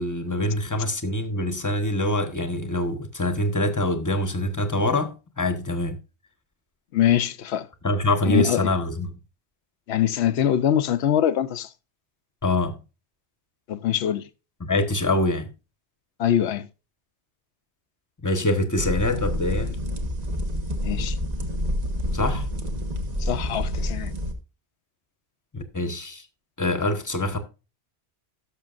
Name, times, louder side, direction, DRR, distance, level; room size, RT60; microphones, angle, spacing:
voice 1, 0.0-6.0 7.8-9.1 12.4-12.8 14.6-15.5 18.2-19.8 22.1-22.5 25.5-26.2 26.6-27.4, left 1 dB, 15° left, 1.1 m, -25 dB
voice 2, 6.9-7.7 8.3-8.7 9.9-11.7 13.7-14.3 16.2-16.7 20.8-21.2 23.2-24.1, left 10 dB, 75° left, 0.9 m, -23 dB
sound 1, 18.8-24.3, equal, 40° right, 1.2 m, -28 dB
17.0 x 6.6 x 2.5 m
omnidirectional pair, 1.1 m